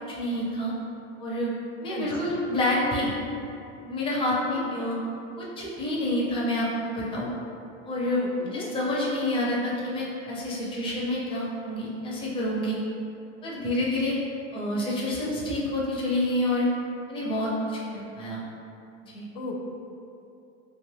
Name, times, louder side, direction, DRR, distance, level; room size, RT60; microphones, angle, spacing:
voice 1, 0.1-0.7 1.2-1.5 1.8-3.1 3.8-5.0 5.4-7.3 7.8-8.2 8.5-12.8 13.4-14.2 14.5-16.7 17.1-18.4 19.1-19.2, left 1 dB, 15° left, -5 dB, 0.5 m, -28 dB
voice 2, 8.1-8.7 19.4-19.6, left 4 dB, 75° left, 1 dB, 0.5 m, -35 dB
2.5 x 2.4 x 3.1 m, 2.7 s
supercardioid pair, 115°, 37 cm